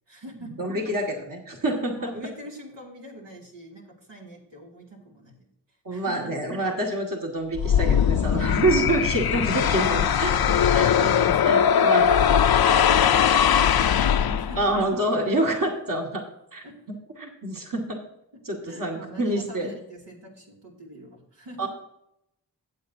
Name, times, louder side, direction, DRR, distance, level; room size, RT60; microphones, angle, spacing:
voice 1, 0.1-0.7 2.0-5.5 5.9-6.3 8.3-9.3 11.1-14.8 16.6-16.7 18.3-21.7, right 1 dB, 85° right, -3 dB, 2.6 m, -43 dB
voice 2, 0.6-2.0 5.8-12.1 14.6-16.2 16.5-16.6 17.2-18.0 18.5-19.7 21.6-21.7, right 1 dB, 50° right, 1 dB, 2.0 m, -27 dB
sound 1, 7.5-14.8, left 8 dB, 60° left, 0.5 m, -20 dB
15.0 x 8.2 x 2.8 m, 0.79 s
cardioid pair, 40°, 42 cm